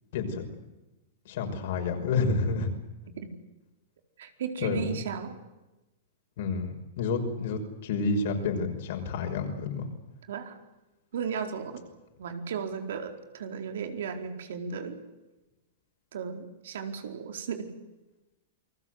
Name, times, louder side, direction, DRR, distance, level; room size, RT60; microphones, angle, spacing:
voice 1, 0.1-0.5 1.3-2.7 4.6-5.0 6.4-9.9, left 4 dB, 55° left, 5 dB, 6.0 m, -29 dB
voice 2, 3.1-3.4 4.2-5.3 10.3-10.6 11.1-11.8 12.2-15.0 16.1-17.7, right 6 dB, 75° right, 5 dB, 4.4 m, -35 dB
29.0 x 21.0 x 8.1 m, 1.0 s
supercardioid pair, 155°, 0 cm